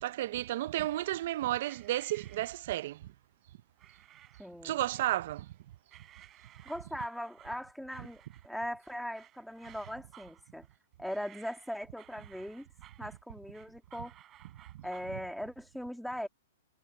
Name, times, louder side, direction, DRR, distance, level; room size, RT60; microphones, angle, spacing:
voice 1, 0.0-3.0 4.6-5.5 14.7-14.8, right 14 dB, 55° right, 0.7 m, -32 dB
sound 1, 1.6-3.0 3.8-4.5 5.0-5.5 5.9-15.2, right 11 dB, 25° right, 7.3 m, -58 dB
voice 2, 4.4-4.8 6.7-10.6 11.0-12.7 13.0-14.1 14.8-16.3, equal, ahead, 2.3 m, -40 dB
hypercardioid pair, 140°, 0 cm